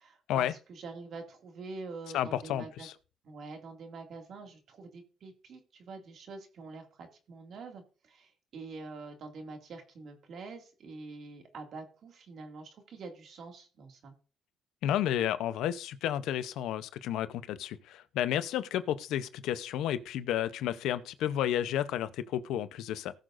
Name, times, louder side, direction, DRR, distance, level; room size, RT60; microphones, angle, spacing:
voice 1, 0.0-2.9 3.2-14.1, right 3 dB, 65° right, 2.2 m, -46 dB
voice 2, 2.1-2.9 14.8-23.1, left 11 dB, 90° left, 0.7 m, -31 dB
18.5 x 6.6 x 2.5 m
cardioid pair, 90°, 0 cm